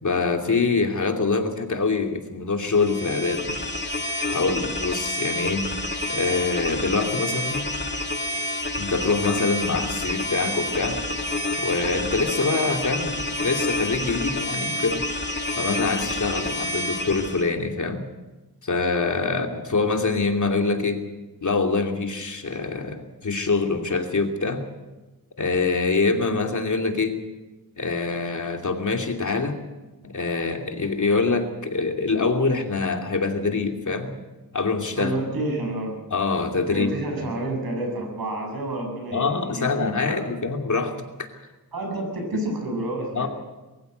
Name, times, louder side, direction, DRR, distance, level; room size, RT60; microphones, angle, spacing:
voice 1, 0.0-3.6 4.3-5.7 6.1-7.7 8.8-11.0 11.6-15.0 15.6-18.1 18.6-21.0 21.4-24.6 25.4-27.2 27.8-29.6 30.0-34.1 34.5-35.2 36.1-36.9 37.2-37.3 39.1-41.0 43.1-43.3, left 4 dB, 55° left, 3 dB, 2.8 m, -25 dB
sound 1, 2.7-17.5, left 1 dB, 30° left, 1.9 m, -28 dB
voice 2, 35.0-35.9 36.7-40.2 41.7-43.3, right 1 dB, 80° right, 2 dB, 7.9 m, -29 dB
23.0 x 15.0 x 8.1 m, 1.1 s
wide cardioid pair, 85°, 36 cm